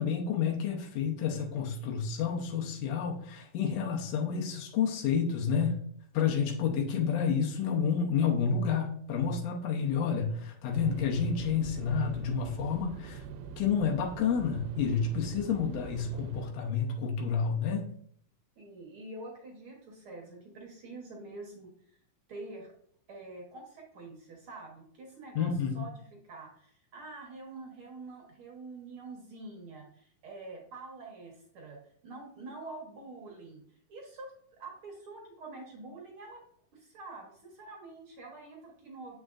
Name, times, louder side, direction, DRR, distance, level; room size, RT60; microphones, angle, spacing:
voice 1, 0.0-5.8 6.1-13.2 13.6-17.9 25.3-25.9, left 6 dB, 85° left, 1 dB, 1.4 m, -30 dB
sound 1, 10.8-16.5, right 6 dB, 85° right, 2.3 m, -44 dB
voice 2, 18.6-22.0 22.3-22.7 23.1-36.4 36.7-39.2, right 2 dB, 65° right, -1 dB, 1.3 m, -46 dB
7.6 x 5.0 x 2.5 m, 0.62 s
omnidirectional pair, 4.1 m